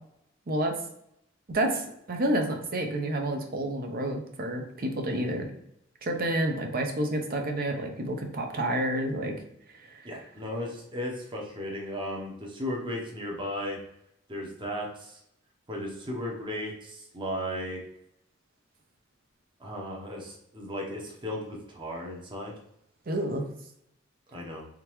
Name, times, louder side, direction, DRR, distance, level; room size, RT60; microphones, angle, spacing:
voice 1, 1.5-5.5 6.0-9.4 9.9-10.0 23.1-23.5, right 1 dB, 50° right, 3 dB, 0.7 m, -29 dB
voice 2, 10.0-13.8 14.3-15.2 15.7-17.8 19.6-22.5 24.3-24.7, equal, 25° right, -1 dB, 0.9 m, -35 dB
3.7 x 3.4 x 3.0 m, 0.75 s
head